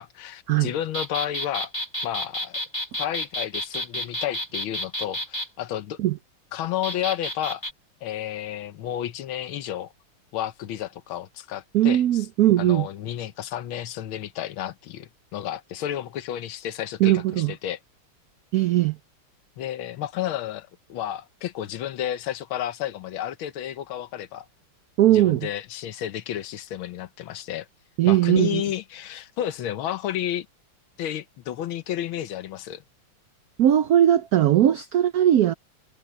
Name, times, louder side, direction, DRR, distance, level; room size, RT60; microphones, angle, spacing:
voice 1, 0.0-1.7 2.0-2.6 3.0-6.0 6.5-7.6 8.0-9.9 10.3-12.3 12.6-17.8 19.6-24.4 25.1-27.7 28.0-30.5 31.0-32.8, left 11 dB, 75° left, 1.7 m, -31 dB
sound 1, 0.9-5.5 6.8-7.7, equal, 10° left, 2.2 m, -31 dB
voice 2, 11.7-12.9 17.0-17.5 18.5-19.0 25.0-25.5 28.0-28.6 33.6-35.5, right 12 dB, 80° right, 0.8 m, -19 dB
omnidirectional pair, 2.3 m